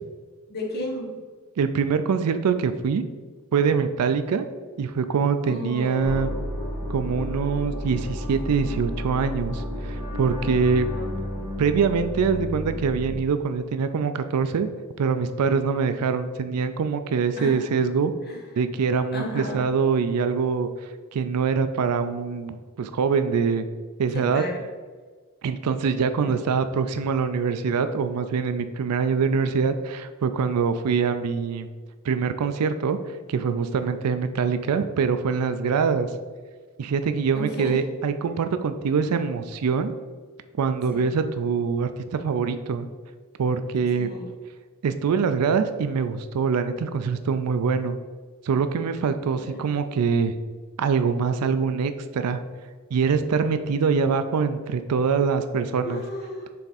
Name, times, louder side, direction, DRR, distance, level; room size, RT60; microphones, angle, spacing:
voice 1, 0.5-1.2 5.4-6.3 10.8-11.1 17.4-17.7 18.3-18.4 19.1-19.7 24.1-24.6 26.2-26.4 37.3-37.8 40.9-41.2 44.0-44.2 49.4-49.7 55.8-56.5, left 1 dB, 45° left, 0 dB, 1.2 m, -34 dB
voice 2, 1.6-3.0 3.5-4.4 4.8-6.3 6.9-10.9 11.6-14.7 15.0-18.1 18.6-20.7 21.1-23.6 24.0-24.4 25.4-31.7 32.0-36.1 36.8-39.9 40.6-42.9 43.4-44.1 44.8-48.0 48.4-50.4 50.8-52.4 52.9-56.0, right 5 dB, 90° right, 9 dB, 0.4 m, -24 dB
sound 1, 6.0-13.1, equal, 25° left, 1.8 m, -31 dB
6.7 x 3.5 x 4.0 m, 1.5 s
head